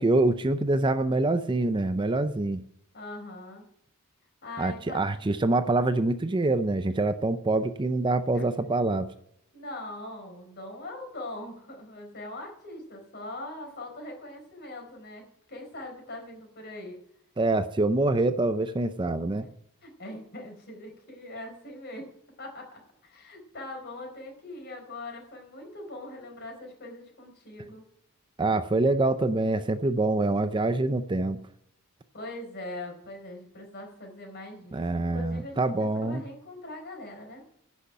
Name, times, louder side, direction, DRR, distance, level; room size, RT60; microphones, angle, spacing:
voice 1, 0.0-2.6 4.6-9.1 17.4-19.5 28.4-31.4 34.7-36.2, right 2 dB, 20° right, 11 dB, 0.5 m, -25 dB
voice 2, 2.9-3.7 4.4-5.4 8.3-8.4 9.5-17.0 19.8-22.1 22.4-27.8 32.1-37.4, left 2 dB, 50° left, 2 dB, 4.4 m, -41 dB
11.0 x 6.4 x 8.9 m, 0.74 s
head